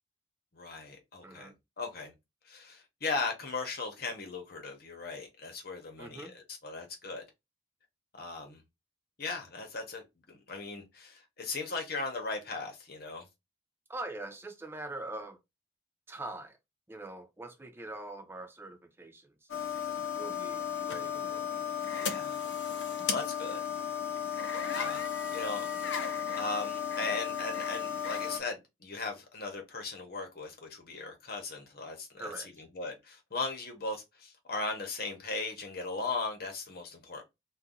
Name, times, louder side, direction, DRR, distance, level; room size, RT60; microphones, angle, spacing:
voice 1, 0.5-2.1 2.4-7.2 8.2-8.6 9.2-13.2 21.9-22.4 23.1-23.6 24.6-25.0 25.3-25.7 26.4-32.3 32.6-37.2, left 3 dB, 55° left, 1.0 m, -38 dB
voice 2, 1.2-1.5 6.0-6.3 13.9-15.4 16.1-16.6 16.9-19.5 20.1-21.6 32.2-32.5, right 2 dB, 15° right, 0.4 m, -43 dB
sound 1, 19.5-28.4, left 7 dB, 75° left, 0.5 m, -34 dB
2.7 x 2.3 x 3.7 m
head